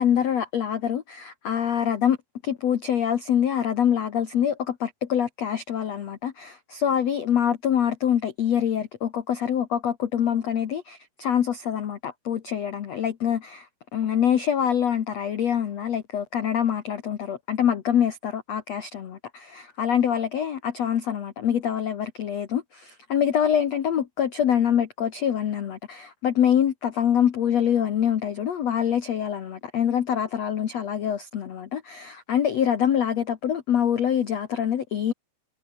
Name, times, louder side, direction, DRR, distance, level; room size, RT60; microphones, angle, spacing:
voice 1, 0.0-2.2 2.4-13.7 13.9-35.1, left 9 dB, 85° left, 1.4 m, -25 dB
omnidirectional pair, 5.4 m